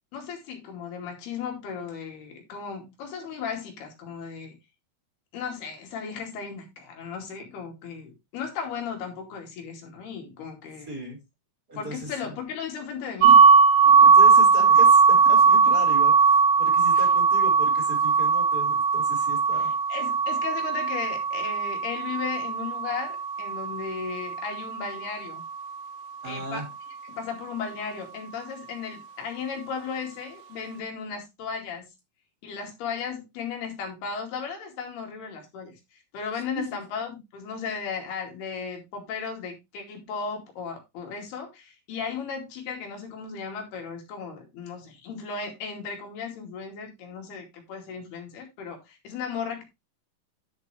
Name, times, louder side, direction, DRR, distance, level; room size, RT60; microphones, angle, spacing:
voice 1, 0.1-4.6 5.3-11.0 11.8-13.5 13.9-14.1 15.7-15.8 16.9-17.0 19.5-25.4 26.2-26.7 27.1-31.9 32.4-49.6, left 6 dB, 85° left, 4.5 m, -36 dB
voice 2, 10.9-11.2 11.7-12.3 14.0-19.7 26.2-26.7 36.7-36.8, equal, 25° right, 4.7 m, -37 dB
sound 1, 13.2-25.0, right 5 dB, 75° right, 2.5 m, -19 dB
10.5 x 6.8 x 3.2 m
omnidirectional pair, 4.4 m